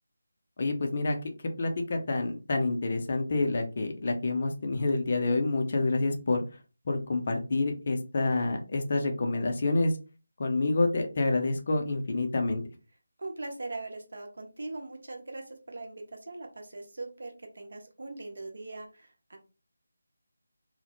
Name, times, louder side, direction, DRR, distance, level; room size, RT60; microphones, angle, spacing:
voice 1, 0.6-1.2 1.6-6.4 6.8-10.0 10.4-12.6, left 2 dB, 40° left, 3 dB, 0.5 m, -28 dB
voice 2, 13.2-19.4, right 2 dB, 60° right, 3 dB, 0.7 m, -41 dB
2.1 x 2.0 x 2.9 m, 0.32 s
figure-of-eight pair, 160°, 0 cm